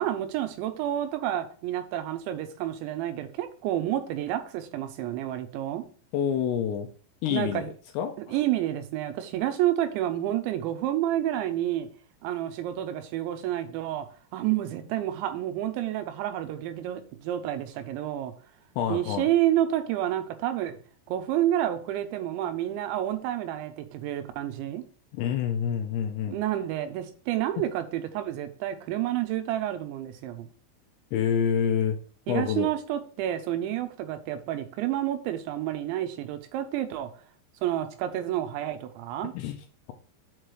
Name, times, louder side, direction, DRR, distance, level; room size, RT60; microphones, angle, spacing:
voice 1, 0.0-5.8 7.3-7.7 8.2-11.9 12.2-14.1 14.3-18.3 18.9-20.7 21.1-24.8 26.3-30.5 32.3-37.1 37.6-39.3, right 12 dB, 85° right, 9 dB, 3.0 m, -29 dB
voice 2, 6.1-6.9 7.2-7.7 8.0-8.4 18.8-19.3 25.1-26.4 31.1-32.0 32.3-32.7 39.3-39.6, left 8 dB, 80° left, 5 dB, 2.5 m, -27 dB
7.5 x 3.2 x 6.3 m, 0.43 s
omnidirectional pair, 5.3 m